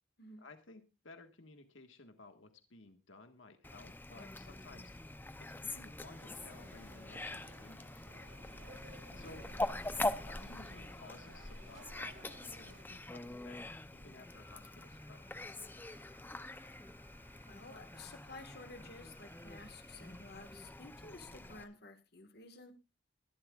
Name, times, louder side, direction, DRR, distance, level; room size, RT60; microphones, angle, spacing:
voice 1, 0.4-4.9 5.4-8.1 9.1-9.5 10.1-15.7, left 3 dB, 70° left, 7 dB, 1.6 m, -57 dB
Fowl, 3.6-21.6, left 2 dB, 10° left, 0.5 m, -44 dB
sound 1, 6.1-12.8, right 2 dB, 70° right, 2.6 m, -59 dB
Wind instrument woodwind instrument, 14.2-20.9, right 7 dB, 20° right, 6.5 m, -68 dB
voice 2, 17.5-22.7, left 3 dB, 50° left, 7 dB, 1.6 m, -53 dB
21.5 x 12.0 x 2.4 m, 0.28 s
head